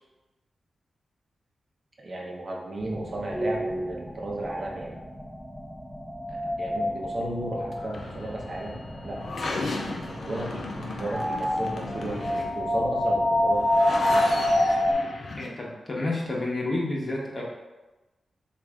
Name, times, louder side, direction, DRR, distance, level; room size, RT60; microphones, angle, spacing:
voice 1, 2.0-4.9 6.3-9.2 10.1-13.7, right 1 dB, 50° right, -2 dB, 0.7 m, -34 dB
sound 1, 2.8-14.9, left 1 dB, 5° right, 0.9 m, -28 dB
sound 2, 7.7-15.5, left 2 dB, 70° left, 0.5 m, -35 dB
voice 2, 15.4-17.4, left 2 dB, 45° left, -3 dB, 0.9 m, -30 dB
3.2 x 2.5 x 3.5 m, 1.1 s
cardioid pair, 55°, 0 cm